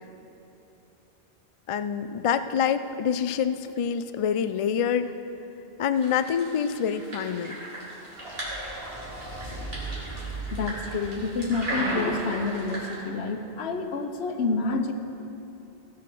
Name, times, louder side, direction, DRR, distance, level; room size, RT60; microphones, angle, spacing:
voice 1, 1.7-5.1 5.8-7.6, left 7 dB, 60° left, 11 dB, 0.3 m, -26 dB
sound 1, 5.9-12.9, right 1 dB, 70° right, 2.8 m, -36 dB
Creepy underwater cinematic impact, 8.1-12.6, right 3 dB, 30° right, 2.6 m, -39 dB
voice 2, 10.5-14.9, left 3 dB, 90° left, 6 dB, 1.1 m, -28 dB
16.0 x 6.3 x 6.0 m, 2.9 s
omnidirectional pair, 1.0 m